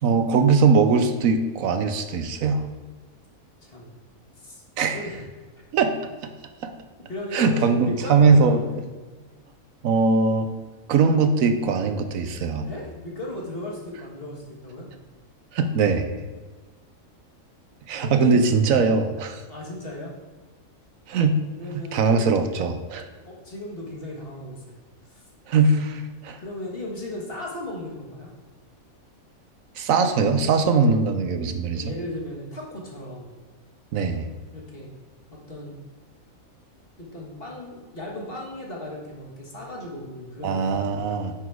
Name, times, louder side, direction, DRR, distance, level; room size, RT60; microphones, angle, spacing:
voice 1, 0.0-2.6 4.8-5.0 5.7-6.0 6.6-6.7 7.3-8.6 9.8-10.5 10.9-12.7 15.5-16.1 17.9-19.4 21.1-21.4 21.7-23.1 25.5-26.4 29.8-31.9 33.9-34.3 40.4-41.3, right 4 dB, 75° right, 8 dB, 1.1 m, -21 dB
voice 2, 4.9-5.3 7.1-8.8 12.6-14.9 18.0-18.4 18.7-18.9 19.5-20.1 21.6-22.2 23.3-24.6 25.1-25.2 26.4-28.3 30.8-31.0 31.7-33.3 34.5-34.9 35.3-35.8 37.0-40.9, left 1 dB, 45° left, -2 dB, 1.8 m, -36 dB
10.0 x 4.1 x 4.6 m, 1.2 s
omnidirectional pair, 1.5 m